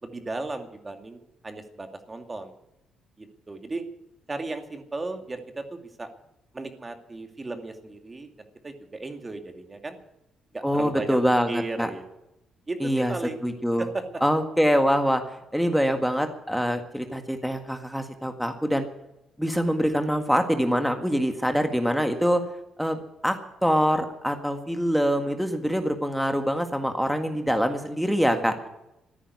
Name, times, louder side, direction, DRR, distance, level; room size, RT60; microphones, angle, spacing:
voice 1, 0.0-2.5 3.2-3.8 4.3-6.1 6.5-10.0 10.5-11.2 11.5-12.1 12.7-13.4 13.8-14.2 28.2-28.7, right 2 dB, 25° right, 6 dB, 2.3 m, -35 dB
voice 2, 10.6-11.9 12.8-13.1 13.4-13.9 14.2-15.2 15.5-18.9 19.4-22.4 22.8-28.5, equal, ahead, 6 dB, 1.8 m, -24 dB
14.0 x 10.0 x 9.6 m, 0.86 s
cardioid pair, 90°, 0 cm